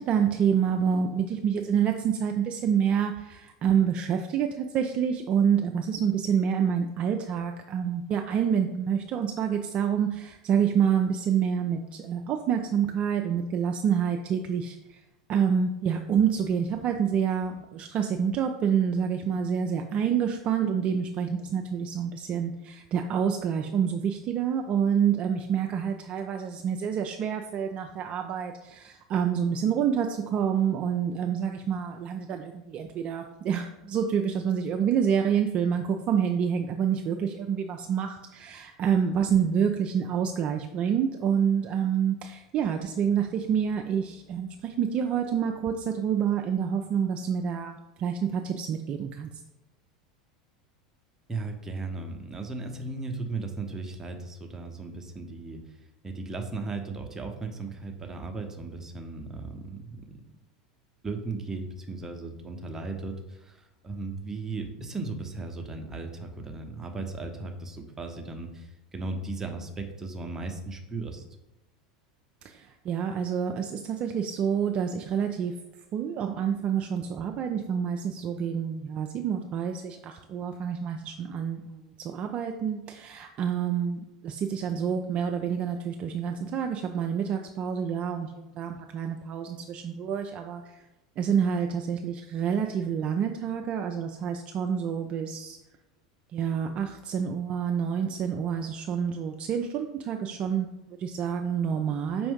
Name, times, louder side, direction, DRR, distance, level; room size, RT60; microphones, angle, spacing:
voice 1, 0.0-15.0 15.3-49.3 72.4-75.6 75.9-90.8 91.2-95.6 96.3-102.3, right 7 dB, 40° right, 4 dB, 0.3 m, -27 dB
voice 2, 51.3-55.6 56.0-60.0 61.0-71.2, right 3 dB, 15° right, 3 dB, 0.7 m, -36 dB
5.2 x 2.5 x 3.6 m, 0.96 s
hypercardioid pair, 85°, 3 cm